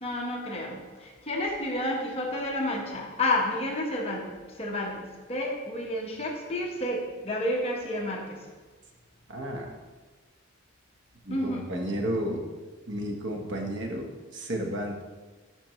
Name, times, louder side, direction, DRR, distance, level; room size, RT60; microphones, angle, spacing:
voice 1, 0.0-4.3 4.6-8.4 11.3-11.6, left 1 dB, 30° left, -1 dB, 1.2 m, -30 dB
voice 2, 9.3-9.7 11.2-12.5 12.9-15.0, equal, 55° right, 2 dB, 1.0 m, -32 dB
10.0 x 6.1 x 3.1 m, 1.3 s
head